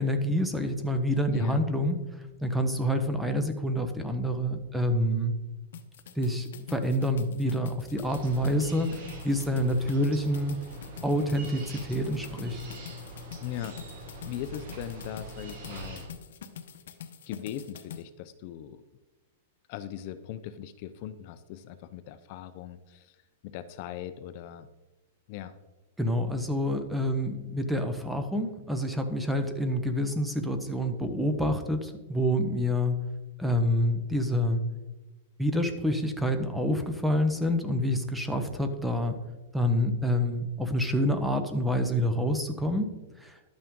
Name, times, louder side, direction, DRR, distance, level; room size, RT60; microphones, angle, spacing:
voice 1, 0.0-2.0 2.4-5.3 6.2-8.9 9.2-10.6 11.0-12.6 26.0-33.0 33.4-34.6 35.4-39.2 39.5-42.9 43.2-43.4, equal, 5° right, 7 dB, 0.8 m, -27 dB
voice 2, 1.3-1.6 13.4-13.8 14.3-16.0 17.3-18.8 19.7-23.2 23.4-24.7 25.3-25.5, left 11 dB, 40° left, 11 dB, 0.5 m, -39 dB
sound 1, 5.7-18.0, left 8 dB, 70° left, 1.0 m, -45 dB
sound 2, 8.0-16.0, right 1 dB, 55° right, 3.2 m, -43 dB
12.0 x 8.6 x 3.7 m, 1.1 s
supercardioid pair, 165°, 0 cm